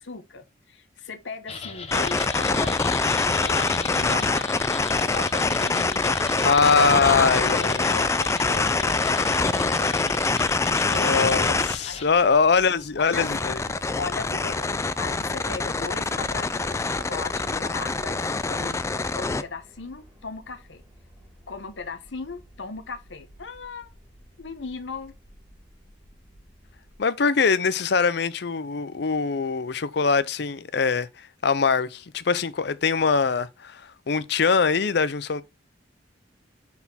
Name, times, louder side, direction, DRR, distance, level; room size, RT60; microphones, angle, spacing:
voice 1, 0.0-4.5 4.9-6.5 6.9-7.6 7.9-10.2 11.8-12.4 13.0-13.5 14.0-14.7 15.0-18.8 19.1-20.8 21.5-23.9 24.4-25.1, left 4 dB, 85° left, 1.0 m, -37 dB
sound 1, 1.5-12.1, left 5 dB, 35° left, 1.1 m, -38 dB
sound 2, 1.9-11.8 13.1-19.4, left 3 dB, 15° left, 0.3 m, -24 dB
voice 2, 6.4-7.9 10.8-13.6 27.0-35.4, left 5 dB, 65° left, 0.6 m, -23 dB
sound 3, 8.6-27.0, equal, 10° right, 2.8 m, -52 dB
5.8 x 4.2 x 4.2 m
head